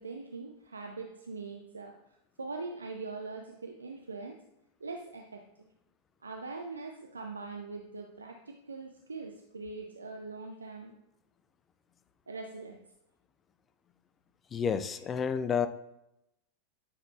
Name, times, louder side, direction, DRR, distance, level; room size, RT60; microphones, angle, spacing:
voice 1, 0.0-4.4 4.8-5.4 6.2-10.9 12.3-12.8, right 3 dB, 75° right, 3 dB, 0.5 m, -42 dB
voice 2, 14.5-15.7, left 7 dB, 25° left, 12 dB, 0.4 m, -30 dB
9.8 x 5.8 x 2.4 m, 0.84 s
figure-of-eight pair, 90°, 0 cm